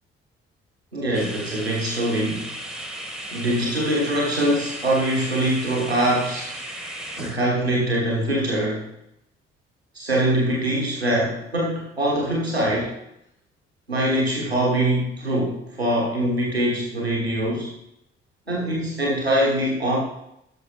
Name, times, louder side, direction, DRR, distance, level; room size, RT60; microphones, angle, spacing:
voice 1, 0.9-2.5 3.3-6.5 7.2-8.9 9.9-12.9 13.9-17.7 18.5-20.0, right 1 dB, 90° right, -4 dB, 1.1 m, -23 dB
sound 1, 1.1-7.4, right 1 dB, ahead, 1.5 m, -35 dB
13.5 x 6.2 x 3.1 m, 0.81 s
figure-of-eight pair, 40°, 30 cm